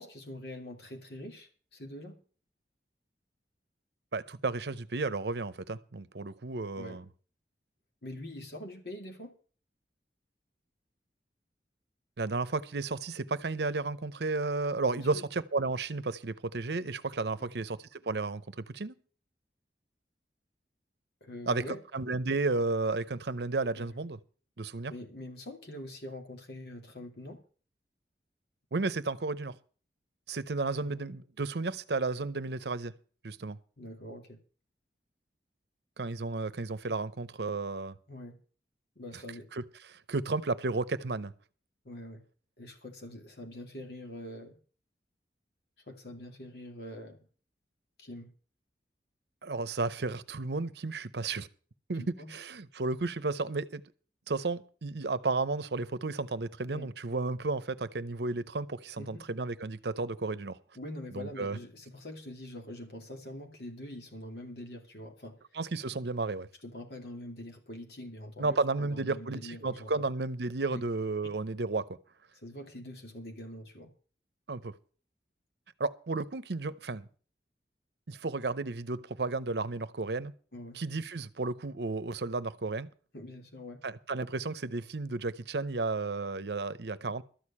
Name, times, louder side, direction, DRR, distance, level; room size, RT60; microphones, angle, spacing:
voice 1, 0.0-2.2 6.8-7.0 8.0-9.3 14.9-15.2 17.4-17.5 21.2-21.8 23.8-24.0 24.9-27.4 30.8-31.1 33.8-34.4 38.1-38.4 39.0-39.5 41.8-42.2 42.6-44.6 45.9-47.2 48.0-48.3 52.0-52.3 56.7-56.9 59.0-59.2 60.8-65.4 66.6-70.0 70.7-70.8 72.4-73.9 80.5-80.8 83.1-83.8, left 1 dB, 65° left, 2.5 m, -44 dB
voice 2, 4.1-7.0 12.2-18.9 21.5-21.6 21.9-24.2 24.6-24.9 28.7-29.6 30.3-32.9 33.2-33.6 36.0-38.0 39.5-39.6 39.9-41.3 49.4-51.5 51.9-53.8 54.3-60.6 61.1-61.6 65.5-66.5 68.4-71.9 74.5-74.7 75.8-77.1 78.1-80.3 80.7-82.9 83.8-87.2, right 3 dB, 70° right, 0.7 m, -33 dB
13.0 x 6.5 x 8.5 m
head